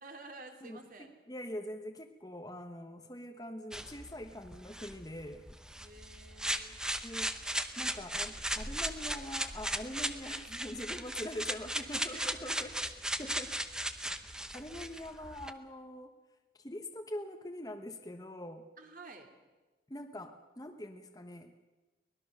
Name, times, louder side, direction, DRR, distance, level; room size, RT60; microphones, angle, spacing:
voice 1, 0.0-1.1 5.8-6.8 11.8-13.2 18.8-19.3, right 3 dB, 50° right, 4 dB, 2.9 m, -51 dB
voice 2, 0.6-5.4 7.0-7.3 7.8-12.9 13.2-13.6 14.5-16.1 16.6-18.7 19.9-21.5, left 1 dB, 20° left, 5 dB, 1.2 m, -43 dB
sound 1, 3.7-15.5, right 1 dB, 5° right, 0.9 m, -37 dB
24.0 x 19.5 x 6.7 m, 1.2 s
head